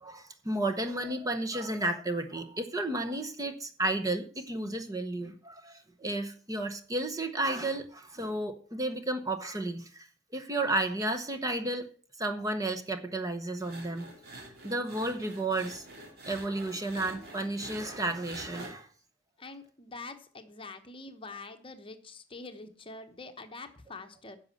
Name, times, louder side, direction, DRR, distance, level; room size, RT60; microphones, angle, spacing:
voice 1, 0.0-10.1 10.3-11.9 12.2-15.9 16.2-18.9, right 2 dB, 20° right, 6 dB, 1.0 m, -32 dB
sound 1, 13.6-18.7, right 1 dB, 50° right, 3.0 m, -46 dB
voice 2, 19.4-24.4, left 3 dB, 25° left, 8 dB, 1.0 m, -45 dB
10.5 x 6.4 x 7.7 m, 0.43 s
head